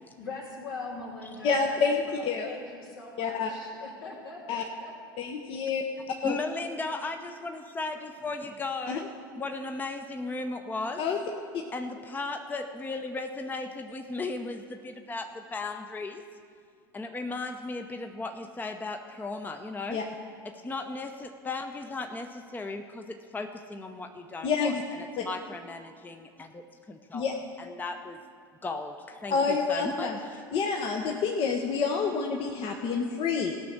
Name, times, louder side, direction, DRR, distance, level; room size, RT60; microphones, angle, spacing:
voice 1, 0.2-4.9, left 3 dB, 75° left, -3 dB, 2.7 m, -42 dB
voice 2, 1.4-2.5 3.2-3.5 4.5-4.6 5.2-5.8 6.2-6.4 8.9-9.0 11.0-11.2 19.9-20.0 24.4-24.8 27.1-27.3 29.3-30.2 30.5-33.5, left 5 dB, 50° left, 2 dB, 0.9 m, -28 dB
voice 3, 6.2-11.0 11.7-16.2 16.9-20.0 20.4-28.2 28.6-30.4 31.1-31.2, left 3 dB, 15° left, 6 dB, 0.7 m, -36 dB
16.0 x 6.0 x 6.6 m, 2.1 s
hypercardioid pair, 75°, 12 cm